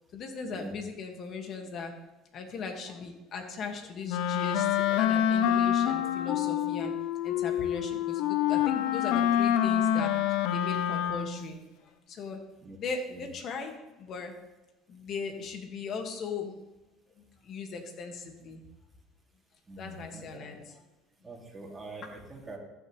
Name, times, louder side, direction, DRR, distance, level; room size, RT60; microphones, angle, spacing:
voice 1, 0.1-1.9 2.3-10.1 10.5-11.6 12.1-12.4 12.8-14.3 14.9-16.5 17.4-18.6 19.8-20.8 21.8-22.0, left 4 dB, 50° left, 3 dB, 2.0 m, -38 dB
Wind instrument woodwind instrument, 4.1-11.5, left 10 dB, 70° left, 0.6 m, -27 dB
voice 2, 19.7-20.4 21.2-22.6, right 2 dB, 20° right, -2 dB, 2.7 m, -44 dB
14.5 x 6.7 x 3.3 m, 1.0 s
supercardioid pair, 95°, 0 cm